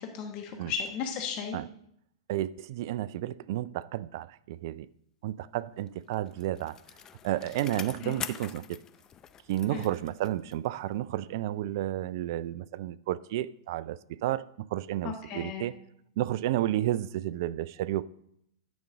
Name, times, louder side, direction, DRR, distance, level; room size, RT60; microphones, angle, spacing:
voice 1, 0.0-1.6 8.0-8.2 9.7-9.9 15.0-15.7, left 7 dB, 40° left, 1.2 m, -35 dB
voice 2, 2.3-4.9 5.2-6.8 7.2-8.8 9.5-15.7 16.2-18.1, right 13 dB, 55° right, 0.4 m, -32 dB
Bicycle, 5.9-10.8 11.1-11.2, left 8 dB, 25° left, 0.5 m, -44 dB
9.4 x 5.2 x 6.0 m
figure-of-eight pair, 105°, 2 cm